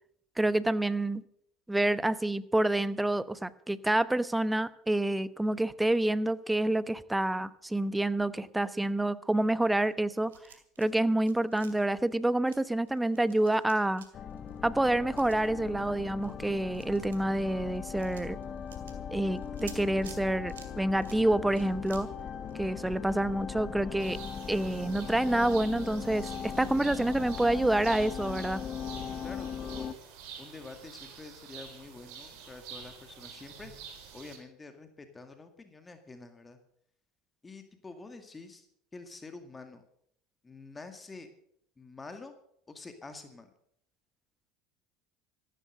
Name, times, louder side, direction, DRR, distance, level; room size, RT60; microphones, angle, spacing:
voice 1, 0.4-1.2 1.7-10.4 10.8-14.0 14.6-18.4 19.1-22.1 22.5-24.2 24.5-28.6, right 1 dB, 10° right, 15 dB, 1.0 m, -28 dB
sound 1, 9.8-10.9 11.2-23.3 23.6-23.7 24.0-24.1, right 7 dB, 80° right, 2.3 m, -54 dB
sound 2, 14.1-29.9, left 7 dB, 40° left, 1.2 m, -39 dB
sound 3, 24.0-34.4, right 6 dB, 65° right, 4.0 m, -48 dB
voice 2, 29.2-29.9 30.4-33.7 34.1-36.6 37.4-38.7 38.9-39.8 40.4-41.3 41.8-42.4 42.7-43.5, left 3 dB, 20° left, 7 dB, 2.0 m, -47 dB
14.0 x 13.0 x 6.5 m, 0.70 s
hypercardioid pair, 70°, 0 cm